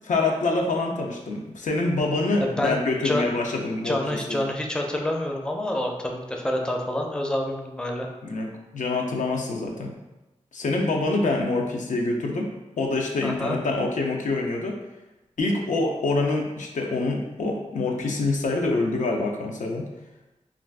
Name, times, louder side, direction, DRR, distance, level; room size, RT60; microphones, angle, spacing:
voice 1, 0.0-4.4 8.2-10.0 10.5-12.5 12.8-14.8 15.4-19.9, left 2 dB, 85° left, 1 dB, 0.4 m, -26 dB
voice 2, 2.6-3.3 3.8-8.1 13.2-13.6, left 1 dB, 5° left, 1 dB, 0.4 m, -27 dB
2.4 x 2.3 x 3.3 m, 1.0 s
wide cardioid pair, 55°, 13 cm